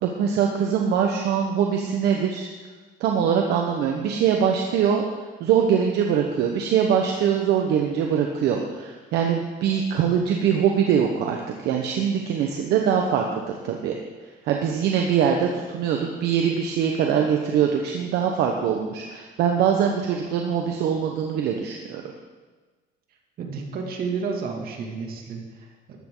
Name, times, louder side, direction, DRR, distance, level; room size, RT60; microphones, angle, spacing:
voice 1, 0.0-2.5 3.0-5.0 5.4-14.0 14.4-22.0, right 8 dB, 80° right, 2 dB, 1.2 m, -23 dB
voice 2, 23.4-26.0, right 5 dB, 60° right, 2 dB, 2.7 m, -31 dB
14.5 x 12.0 x 4.0 m, 1.3 s
cardioid pair, 110°, 17 cm